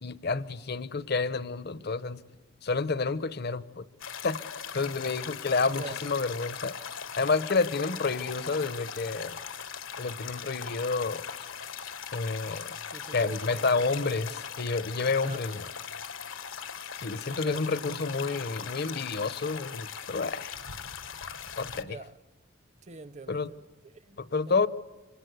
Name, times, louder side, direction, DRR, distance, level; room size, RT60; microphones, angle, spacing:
voice 1, 0.0-2.2 2.6-3.8 4.2-4.4 4.7-6.8 7.2-9.4 10.0-11.2 12.1-12.8 13.1-15.6 17.0-20.6 21.6-22.0 23.3-23.5 24.2-24.7, left 4 dB, 55° left, 0.8 m, -29 dB
sound 1, 4.0-21.8, left 7 dB, 80° left, 1.4 m, -40 dB
voice 2, 5.6-6.0 12.9-14.4 15.2-15.5 17.3-18.0 21.7-22.2 22.8-24.2 24.5-24.7, right 3 dB, 35° right, 0.8 m, -45 dB
26.5 x 26.0 x 8.2 m
head